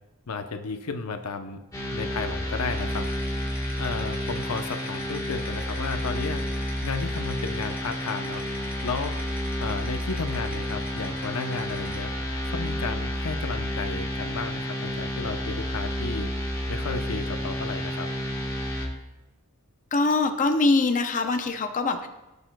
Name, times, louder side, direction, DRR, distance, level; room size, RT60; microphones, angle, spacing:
voice 1, 0.3-1.6 1.9-3.1 3.8-6.4 6.8-8.4 8.8-9.2 9.6-12.1 12.4-16.3 16.7-18.1, left 4 dB, 85° left, 6 dB, 0.7 m, -33 dB
sound 1, 1.7-18.9, equal, 15° left, 1.3 m, -30 dB
sound 2, 2.7-12.1, right 1 dB, 5° right, 1.7 m, -46 dB
voice 2, 19.9-22.1, left 3 dB, 35° left, 6 dB, 0.6 m, -23 dB
15.5 x 6.9 x 2.2 m, 1.0 s
head